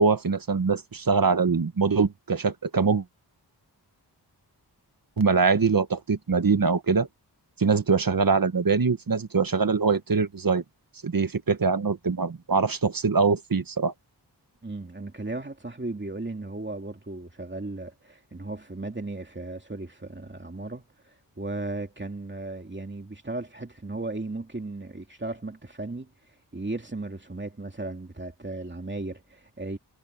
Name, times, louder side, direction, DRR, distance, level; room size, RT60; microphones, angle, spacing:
voice 1, 0.0-3.0 5.2-7.1 7.6-10.6 11.0-13.9, right 4 dB, 55° right, 1.6 m, -23 dB
voice 2, 14.6-29.8, right 2 dB, 25° right, 2.6 m, -36 dB
wide cardioid pair, 95°, 42 cm